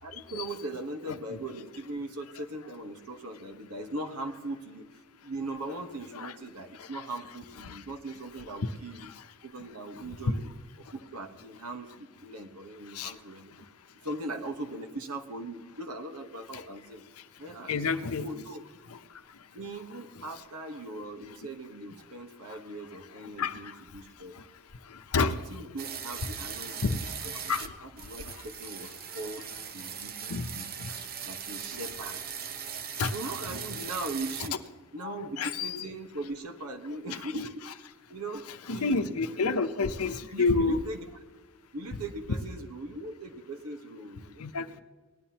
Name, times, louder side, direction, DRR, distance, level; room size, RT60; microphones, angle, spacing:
voice 1, 0.0-4.9 5.2-9.1 9.4-10.5 10.9-13.5 14.0-17.0 17.4-18.6 19.5-24.3 25.2-27.0 27.2-27.5 27.8-30.7 31.2-32.2 33.1-34.6 34.9-37.6 38.1-39.5 40.3-41.1 41.7-44.7, right 2 dB, 85° right, 6 dB, 1.3 m, -40 dB
voice 2, 17.7-18.2 18.9-19.0 22.5-22.6 23.2-23.7 24.4-24.5 24.9-25.4 26.8-27.0 27.5-27.7 30.3-30.5 30.8-30.9 31.7-31.8 33.0-33.1 33.5-33.6 35.0-35.8 37.2-37.3 38.7-40.8 44.4-44.8, left 4 dB, 75° left, 10 dB, 0.7 m, -30 dB
sound 1, 25.8-27.7 28.0-34.5, right 7 dB, 45° right, 0.7 m, -39 dB
18.5 x 11.0 x 2.9 m, 1.3 s
head